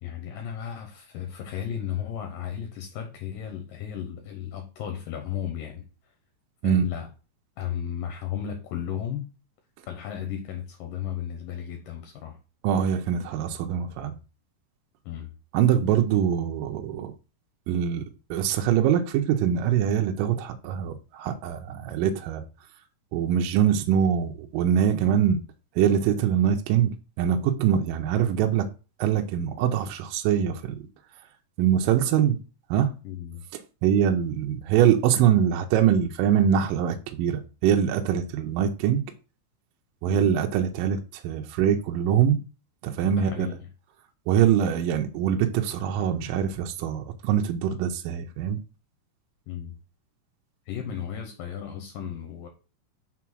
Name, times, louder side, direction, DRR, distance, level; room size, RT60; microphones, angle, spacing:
voice 1, 0.0-5.9 6.6-7.1 7.6-9.3 9.9-12.4 15.1-15.3 33.0-33.4 40.0-40.3 43.0-43.7 49.5-49.8 50.7-52.5, left 9 dB, 75° left, 2.5 m, -34 dB
voice 2, 12.6-14.2 15.5-17.1 17.7-18.0 18.3-22.4 23.1-25.4 25.8-26.9 27.2-28.7 29.0-30.9 31.6-32.4 32.7-32.9 33.8-39.0 40.0-42.4 42.8-43.5 44.3-48.6, right 9 dB, 75° right, 2.2 m, -23 dB
5.9 x 3.9 x 6.1 m
omnidirectional pair, 4.2 m